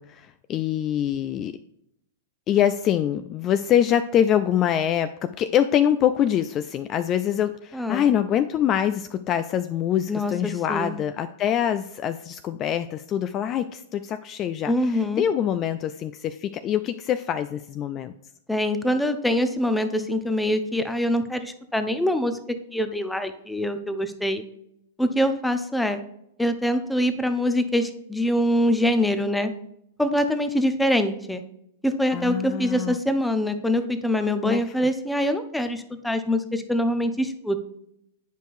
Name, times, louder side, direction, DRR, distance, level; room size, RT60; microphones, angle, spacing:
voice 1, 0.0-1.5 2.5-18.1 32.1-33.0 34.4-34.9, left 10 dB, 30° left, 11 dB, 0.3 m, -24 dB
voice 2, 7.7-8.1 10.1-11.0 14.7-15.2 18.5-22.4 22.7-24.4 25.0-26.0 26.4-29.5 30.0-31.4 31.8-37.6, left 1 dB, 5° left, 9 dB, 0.7 m, -24 dB
9.1 x 5.2 x 2.6 m, 0.77 s
figure-of-eight pair, 105°, 0 cm